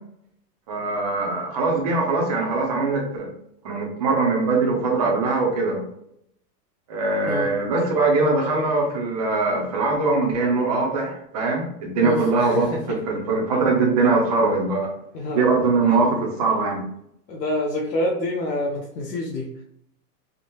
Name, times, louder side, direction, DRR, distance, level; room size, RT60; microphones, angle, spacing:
voice 1, 0.7-3.3 3.6-5.8 6.9-14.9 15.3-16.8, right 3 dB, 25° right, -1 dB, 0.4 m, -22 dB
voice 2, 12.0-12.8 15.1-15.5 17.3-19.6, left 1 dB, 80° left, -2 dB, 0.8 m, -27 dB
3.5 x 2.0 x 2.8 m, 0.74 s
hypercardioid pair, 150°, 49 cm